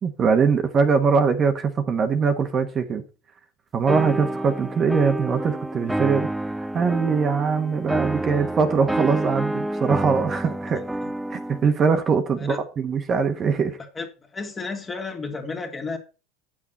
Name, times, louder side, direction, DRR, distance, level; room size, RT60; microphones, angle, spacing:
voice 1, 0.0-3.0 3.7-10.8 11.3-13.8, right 5 dB, 35° right, 1.2 m, -22 dB
sound 1, 3.9-11.7, right 1 dB, 5° right, 0.5 m, -28 dB
voice 2, 13.9-16.0, left 4 dB, 25° left, 2.2 m, -32 dB
8.7 x 6.3 x 5.4 m
hypercardioid pair, 95°, 0 cm